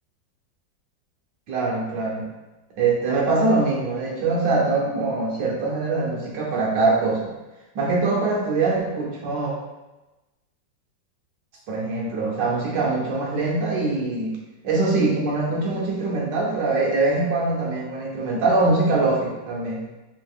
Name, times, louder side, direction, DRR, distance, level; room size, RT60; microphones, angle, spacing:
voice 1, 1.5-2.3 2.8-7.3 7.7-9.5 11.7-14.3 14.6-19.8, right 3 dB, 75° right, -3 dB, 1.5 m, -23 dB
4.5 x 2.8 x 2.4 m, 1.1 s
omnidirectional pair, 2.0 m